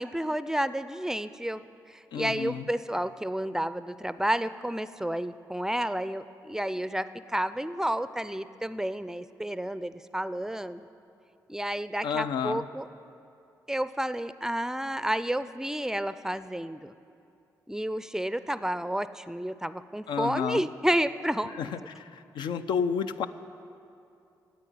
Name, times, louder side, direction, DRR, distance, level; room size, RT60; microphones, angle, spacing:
voice 1, 0.0-10.9 11.5-12.9 13.7-16.9 17.7-21.6, right 1 dB, 5° right, 14 dB, 0.4 m, -31 dB
voice 2, 2.1-2.6 12.0-12.7 20.1-20.6 21.6-23.3, left 7 dB, 75° left, 10 dB, 0.4 m, -31 dB
9.7 x 8.2 x 9.3 m, 2.6 s
supercardioid pair, 60°, 8 cm